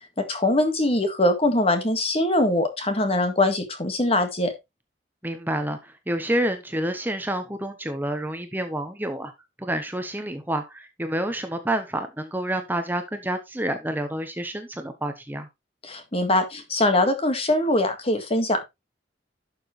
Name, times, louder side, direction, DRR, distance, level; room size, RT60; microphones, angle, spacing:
voice 1, 0.2-4.5 15.9-18.6, left 1 dB, 35° left, 1.8 m, -22 dB
voice 2, 5.2-9.3 9.6-15.5, right 1 dB, 10° right, 1.0 m, -28 dB
11.5 x 6.1 x 3.2 m
head